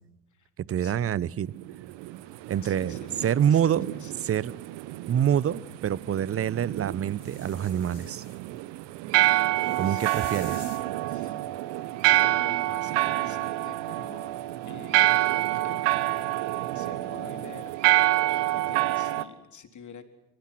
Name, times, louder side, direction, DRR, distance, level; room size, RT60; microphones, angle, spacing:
voice 1, 0.7-1.5 2.5-3.0 3.2-3.9 4.2-4.5 5.1-8.2 9.8-10.6, right 9 dB, 25° right, 23 dB, 0.9 m, -26 dB
sound 1, 1.6-19.2, right 16 dB, 55° right, 1.5 m, -27 dB
voice 2, 2.6-4.1 9.6-10.7 11.1-11.6 12.0-14.3 14.6-20.1, left 6 dB, 35° left, 7 dB, 4.0 m, -48 dB
sound 2, 7.2-8.4 9.5-10.9 13.0-13.1, left 15 dB, 50° left, 2.1 m, -48 dB
28.0 x 25.0 x 6.3 m, 0.95 s
figure-of-eight pair, 65°, 50 cm